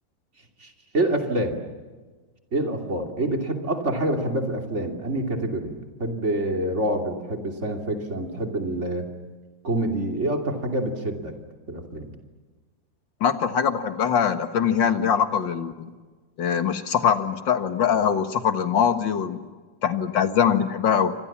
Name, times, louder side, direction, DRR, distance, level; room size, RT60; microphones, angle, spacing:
voice 1, 0.6-1.6 2.5-9.1 9.6-11.3 11.7-12.1, right 1 dB, 35° right, 4 dB, 3.1 m, -27 dB
voice 2, 13.2-15.9 16.4-19.4 19.8-21.1, left 7 dB, 75° left, 9 dB, 2.3 m, -22 dB
28.5 x 25.5 x 7.3 m, 1.4 s
omnidirectional pair, 2.1 m